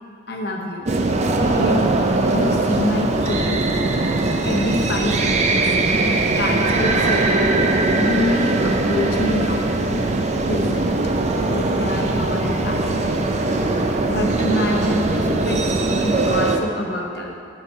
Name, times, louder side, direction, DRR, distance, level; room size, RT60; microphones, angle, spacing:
voice 1, 0.3-0.8 1.5-2.0 2.3-3.6 4.4-7.4 8.0-9.8 10.5-11.0 11.4-13.2 14.1-17.3, left 1 dB, 60° left, 1 dB, 0.9 m, -26 dB
sound 1, 0.9-16.6, right 2 dB, 35° right, 0.5 m, -20 dB
7.0 x 6.7 x 4.7 m, 2.4 s
head